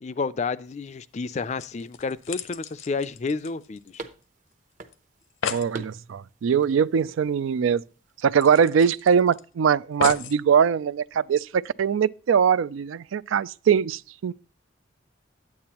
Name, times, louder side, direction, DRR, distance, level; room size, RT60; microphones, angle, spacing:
voice 1, 0.0-4.0, left 4 dB, 35° left, 0.4 m, -30 dB
sound 1, 0.6-8.3, right 3 dB, 40° right, 0.8 m, -48 dB
sound 2, 1.6-4.2 4.5-4.6 4.9-5.0 5.2-5.7 7.2-7.3 7.7-7.8 8.4-9.4 10.0-10.4 11.1-11.2, left 6 dB, 85° left, 0.7 m, -34 dB
voice 2, 5.5-7.8 8.2-14.3, right 7 dB, 85° right, 0.4 m, -22 dB
9.5 x 8.6 x 2.9 m
head